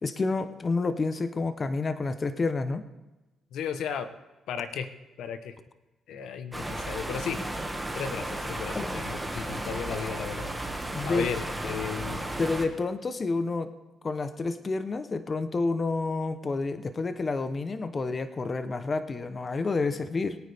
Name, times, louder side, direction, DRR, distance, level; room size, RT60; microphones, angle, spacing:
voice 1, 0.0-2.9 8.7-8.9 10.9-11.3 12.4-13.7 14.0-20.4, left 3 dB, 35° left, 10 dB, 0.8 m, -29 dB
voice 2, 3.5-4.1 4.5-4.9 5.2-5.5 6.1-7.4 7.9-10.5 11.0-12.3, left 7 dB, 80° left, 9 dB, 1.0 m, -34 dB
sound 1, 6.5-12.7, right 1 dB, 5° right, 1.8 m, -34 dB
22.0 x 9.4 x 3.5 m, 1.1 s
cardioid pair, 90°, 0 cm